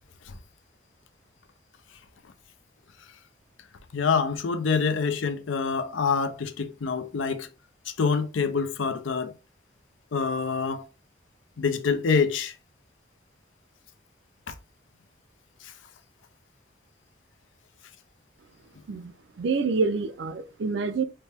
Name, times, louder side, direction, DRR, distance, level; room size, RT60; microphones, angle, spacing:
voice 1, 3.9-7.5 7.9-9.3 10.1-10.9 11.6-12.5 14.5-14.6 15.6-15.7, left 5 dB, 80° left, 0.6 m, -26 dB
voice 2, 18.9-21.0, right 4 dB, 65° right, 0.5 m, -27 dB
4.4 x 2.2 x 3.3 m
head